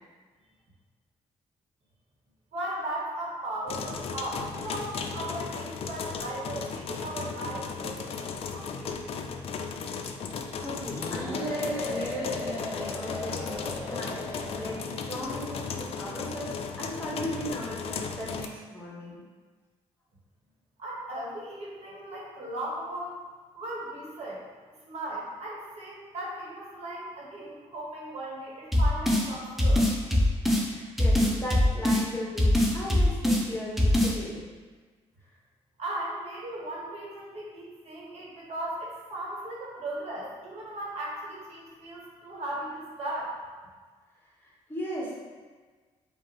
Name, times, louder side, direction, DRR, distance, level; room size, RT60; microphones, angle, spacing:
voice 1, 2.5-9.2 20.8-23.2 23.5-24.4 24.8-29.8 35.8-43.4, right 1 dB, 65° right, -5 dB, 1.2 m, -37 dB
sound 1, 3.7-18.5, left 5 dB, 55° left, 0.4 m, -36 dB
voice 2, 10.6-19.2 30.4-34.4 44.4-45.4, equal, 20° left, -5 dB, 1.1 m, -37 dB
sound 2, 10.8-15.0, left 1 dB, 20° right, 1.5 m, -37 dB
sound 3, 28.7-29.3 29.6-30.7 31.0-32.0 32.4-33.4 33.8-34.1, left 1 dB, ahead, 0.6 m, -22 dB
5.0 x 2.4 x 2.9 m, 1.4 s
cardioid pair, 80°, 12 cm